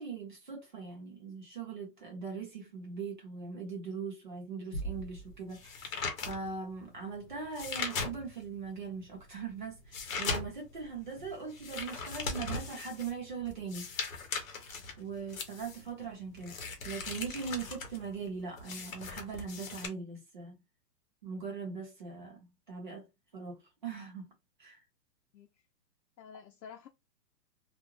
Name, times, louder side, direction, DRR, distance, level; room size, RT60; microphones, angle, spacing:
voice 1, 0.0-13.9 15.0-20.6 21.2-23.0 23.3-24.3 24.6-24.8, right 5 dB, 30° right, 0.7 m, -41 dB
sound 1, 4.7-8.6 9.0-19.9, left 4 dB, 55° left, 0.9 m, -39 dB
voice 2, 26.2-26.9, left 7 dB, 85° left, 0.7 m, -50 dB
2.5 x 2.0 x 3.0 m
hypercardioid pair, 180°, 49 cm